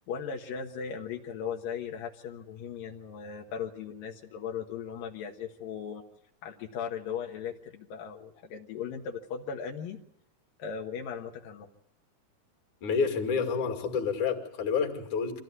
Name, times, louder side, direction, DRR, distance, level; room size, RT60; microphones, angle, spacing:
voice 1, 0.1-6.0 6.4-10.0 10.6-11.7, left 7 dB, 90° left, 1 dB, 3.1 m, -37 dB
voice 2, 12.8-15.4, left 5 dB, 60° left, 3 dB, 3.7 m, -29 dB
25.5 x 15.0 x 9.5 m, 0.75 s
omnidirectional pair, 3.8 m